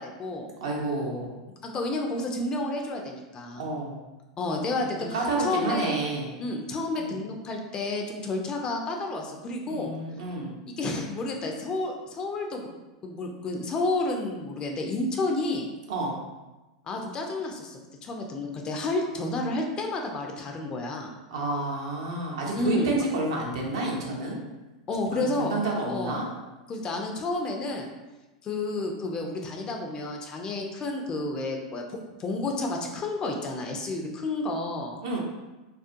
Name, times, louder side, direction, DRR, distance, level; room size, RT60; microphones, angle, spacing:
voice 1, 0.0-0.5 1.6-3.7 4.4-5.9 6.4-9.9 10.7-12.7 13.0-15.7 16.9-21.1 22.6-23.0 24.9-25.5 25.9-26.2 26.7-27.9 28.4-34.9, left 2 dB, 30° left, 2 dB, 0.4 m, -31 dB
voice 2, 0.6-1.3 3.6-4.0 4.8-4.9 5.1-6.3 6.9-7.2 9.7-10.5 15.9-16.2 21.3-24.4 25.1-26.3 35.0-35.2, right 2 dB, 65° right, -2 dB, 0.6 m, -29 dB
2.4 x 2.4 x 2.5 m, 1.1 s
figure-of-eight pair, 90°, 3 cm